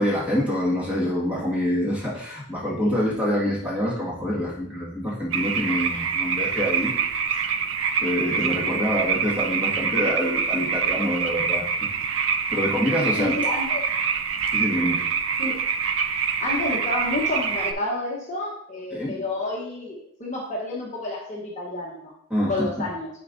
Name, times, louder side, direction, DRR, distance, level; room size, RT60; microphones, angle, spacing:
voice 1, 0.0-6.9 8.0-11.6 12.5-13.4 14.5-15.0 18.9-19.2 22.3-22.8, equal, 5° right, -7 dB, 1.8 m, -26 dB
sound 1, 5.3-17.7, right 6 dB, 60° right, 0.5 m, -25 dB
voice 2, 13.2-13.8 15.4-15.5 16.4-22.1 22.5-23.1, left 2 dB, 30° left, -4 dB, 1.1 m, -30 dB
10.0 x 4.4 x 2.6 m, 0.71 s
head